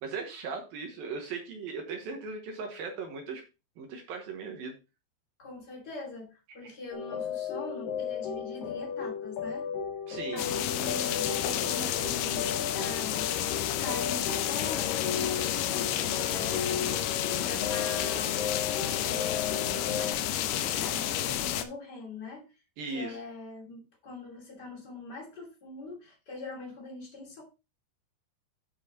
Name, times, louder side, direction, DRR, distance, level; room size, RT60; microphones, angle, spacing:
voice 1, 0.0-3.4 3.8-4.8 6.6-6.7 10.1-10.4 22.8-23.2, right 4 dB, 70° right, 2.4 m, -38 dB
voice 2, 5.4-9.7 10.3-13.5 13.8-18.6 19.0-22.4 22.8-27.4, left 2 dB, 30° left, 2.4 m, -42 dB
sound 1, 6.9-20.1, left 7 dB, 55° left, 3.3 m, -35 dB
sound 2, 10.4-21.6, left 11 dB, 80° left, 3.1 m, -31 dB
10.0 x 5.6 x 4.0 m
omnidirectional pair, 5.4 m